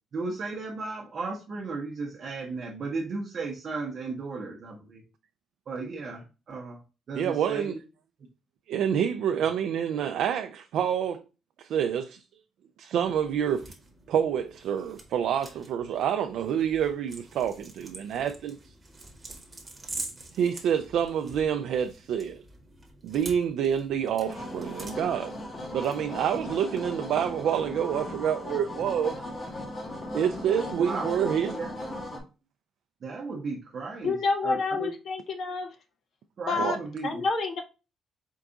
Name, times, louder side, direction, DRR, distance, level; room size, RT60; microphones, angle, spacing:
voice 1, 0.1-5.0 5.7-6.8 7.1-7.8 30.8-31.1 31.4-32.2 33.0-34.2 34.4-34.9 36.4-37.2, right 3 dB, 40° right, 0.7 m, -35 dB
voice 2, 7.2-7.8 8.7-11.2 11.6-12.3 12.8-13.7 14.1-18.7 20.3-22.4 23.0-25.4 25.7-29.2 30.1-31.6 36.6-36.8, right 8 dB, 70° right, 0.3 m, -27 dB
sound 1, 13.0-26.4, right 2 dB, 15° right, 1.0 m, -46 dB
sound 2, 24.3-32.2, left 1 dB, 25° left, 0.8 m, -37 dB
voice 3, 34.0-35.7 36.5-36.8 37.0-37.6, left 4 dB, 50° left, 0.6 m, -28 dB
4.5 x 2.4 x 3.8 m
cardioid pair, 170°, 0 cm